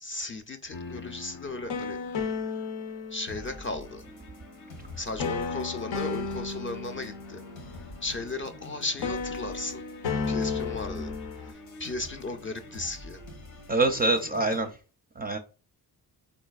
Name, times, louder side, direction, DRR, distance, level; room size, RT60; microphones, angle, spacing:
voice 1, 0.0-2.0 3.1-4.1 5.0-7.4 8.0-9.8 10.3-11.1 11.4-13.2, left 3 dB, 25° left, 0.5 m, -35 dB
sound 1, 0.7-3.9 5.2-8.7 9.0-11.5, left 5 dB, 65° left, 0.7 m, -34 dB
sound 2, 3.3-14.7, left 1 dB, 85° left, 1.0 m, -46 dB
voice 2, 13.7-14.7 15.2-15.4, right 2 dB, 20° right, 0.5 m, -25 dB
3.9 x 2.6 x 2.3 m
supercardioid pair, 40°, 47 cm